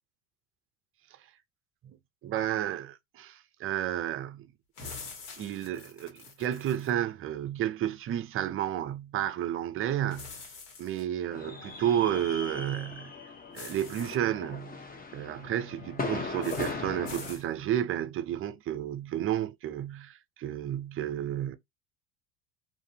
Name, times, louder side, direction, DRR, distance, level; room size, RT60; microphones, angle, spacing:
voice 1, 2.2-4.5 5.4-10.3 10.8-13.1 13.5-14.8 15.1-21.6, right 11 dB, 35° right, 0.4 m, -31 dB
sound 1, 4.7-6.9 10.1-11.0 13.5-14.2 16.4-16.7 17.0-17.4, left 4 dB, 65° left, 1.5 m, -45 dB
sound 2, 11.3-17.3, left 4 dB, 20° left, 0.7 m, -39 dB
2.6 x 2.5 x 2.7 m
supercardioid pair, 85°, 41 cm